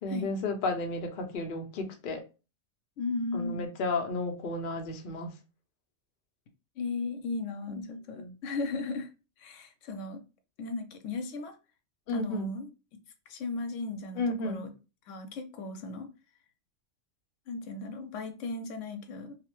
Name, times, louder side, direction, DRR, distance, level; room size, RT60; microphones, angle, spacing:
voice 1, 0.0-2.2 3.3-5.3 7.7-7.8 8.2-8.3 12.1-12.5 14.2-14.6, left 2 dB, 55° left, 0.7 m, -33 dB
voice 2, 3.0-3.7 6.8-9.1 9.4-10.2 10.6-11.6 12.1-12.7 13.3-14.7 15.1-16.1 17.5-19.4, left 3 dB, 85° left, 0.9 m, -36 dB
2.7 x 2.0 x 2.9 m
omnidirectional pair, 1.2 m